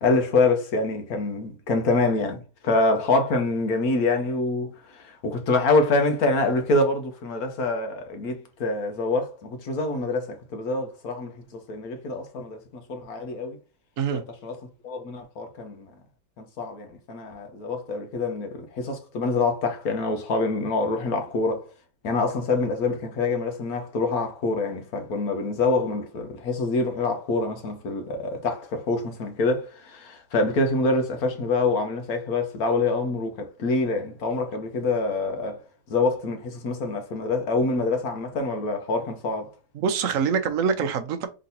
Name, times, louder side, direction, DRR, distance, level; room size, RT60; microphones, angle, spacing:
voice 1, 0.0-13.6 14.4-14.6 14.8-15.9 16.4-21.6 22.0-35.6 35.9-39.5, left 3 dB, 65° left, 1.4 m, -26 dB
voice 2, 39.7-41.3, right 6 dB, 60° right, 1.0 m, -24 dB
3.9 x 3.8 x 2.7 m
omnidirectional pair, 1.8 m